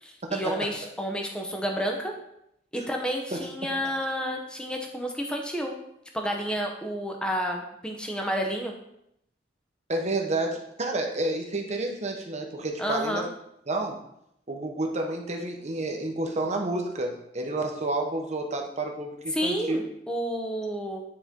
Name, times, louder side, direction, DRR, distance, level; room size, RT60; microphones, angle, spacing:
voice 1, 0.0-2.1 2.7-5.7 6.1-8.7 12.8-13.3 19.3-21.0, equal, 5° left, 2 dB, 0.8 m, -30 dB
voice 2, 9.9-13.2 13.7-14.0 14.5-19.8, right 2 dB, 40° right, 3 dB, 1.0 m, -30 dB
9.8 x 4.3 x 3.6 m, 0.77 s
head